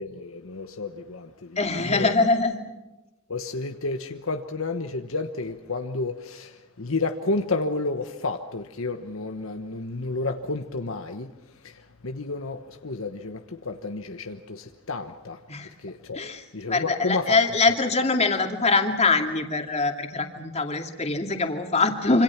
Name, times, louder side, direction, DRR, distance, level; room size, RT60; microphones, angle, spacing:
voice 1, 0.0-2.2 3.3-16.2 16.5-17.4, left 3 dB, 70° left, 1.2 m, -31 dB
voice 2, 1.6-2.6 15.5-15.7 16.1-22.2, left 3 dB, 30° left, 2.5 m, -23 dB
27.0 x 26.0 x 5.9 m
head